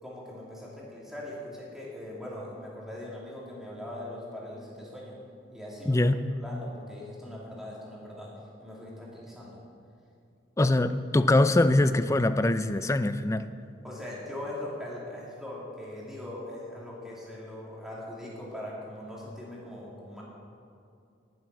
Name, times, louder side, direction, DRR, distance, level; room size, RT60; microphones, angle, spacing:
voice 1, 0.0-5.2 5.5-6.0 6.4-8.3 8.6-9.6 13.8-20.2, left 1 dB, ahead, -6 dB, 2.9 m, -41 dB
voice 2, 5.9-6.3 10.6-13.5, left 2 dB, 15° left, 12 dB, 0.4 m, -23 dB
12.0 x 7.7 x 9.6 m, 2.5 s
head